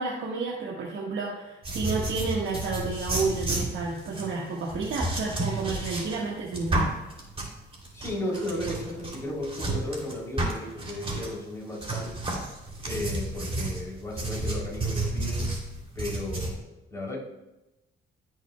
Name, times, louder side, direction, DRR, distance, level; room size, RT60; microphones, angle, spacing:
voice 1, 0.0-6.9, right 3 dB, 70° right, -3 dB, 1.4 m, -31 dB
sound 1, 1.6-11.3 11.8-16.5, right 2 dB, 30° right, 2.9 m, -31 dB
voice 2, 7.9-12.1 12.8-15.5 15.9-17.2, left 1 dB, 15° left, -3 dB, 3.1 m, -34 dB
16.0 x 6.4 x 2.2 m, 0.98 s
cardioid pair, 90°, 20 cm